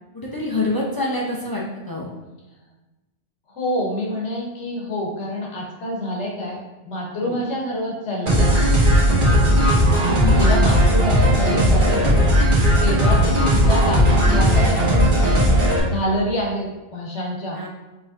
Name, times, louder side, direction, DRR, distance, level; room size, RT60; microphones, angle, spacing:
voice 1, 0.1-2.1 7.2-7.4 9.4-9.6 10.1-10.4 17.5-17.7, left 2 dB, 25° left, -4 dB, 0.5 m, -26 dB
voice 2, 3.5-6.6 6.8-8.5 10.0-12.2 12.8-15.4 15.8-17.6, left 1 dB, 70° left, -1 dB, 1.3 m, -27 dB
sound 1, 8.3-15.8, equal, 45° right, 1.3 m, -16 dB
5.3 x 3.2 x 2.5 m, 1.1 s
omnidirectional pair, 1.2 m